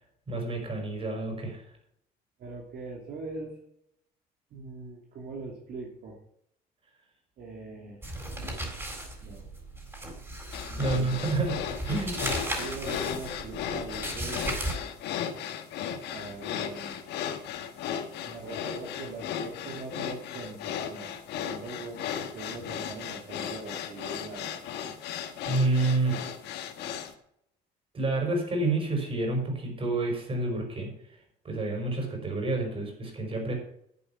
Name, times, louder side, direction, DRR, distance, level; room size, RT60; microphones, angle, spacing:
voice 1, 0.3-1.7 10.8-11.6 11.8-12.3 25.4-26.3 27.9-30.9 31.4-33.5, right 2 dB, 35° right, 3 dB, 5.2 m, -29 dB
voice 2, 2.4-3.5 4.5-6.2 7.4-8.0 9.2-9.5 10.7-11.2 11.9-12.0 12.5-14.4 16.0-17.0 18.2-22.0 22.3-24.6, right 3 dB, 65° right, -1 dB, 2.6 m, -41 dB
sound 1, 8.0-14.7, right 1 dB, 15° right, 4.1 m, -36 dB
sound 2, 10.5-27.1, left 9 dB, 85° left, 1.5 m, -36 dB
11.0 x 8.5 x 5.8 m, 0.72 s
cardioid pair, 110°, 17 cm